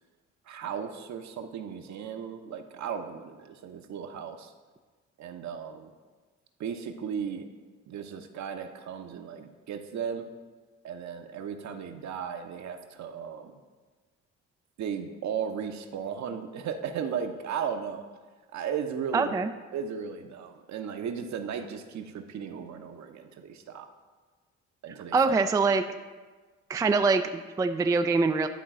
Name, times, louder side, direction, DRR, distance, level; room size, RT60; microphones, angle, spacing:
voice 1, 0.5-4.5 5.2-5.9 6.6-7.5 7.9-10.3 10.8-13.5 14.8-18.0 18.5-19.4 19.7-23.9 24.8-25.4, right 7 dB, 55° right, 6 dB, 0.8 m, -36 dB
voice 2, 19.1-19.5 24.9-25.8 26.7-28.5, right 4 dB, 10° right, 7 dB, 0.3 m, -24 dB
11.0 x 3.9 x 3.7 m, 1.3 s
hypercardioid pair, 55°, 34 cm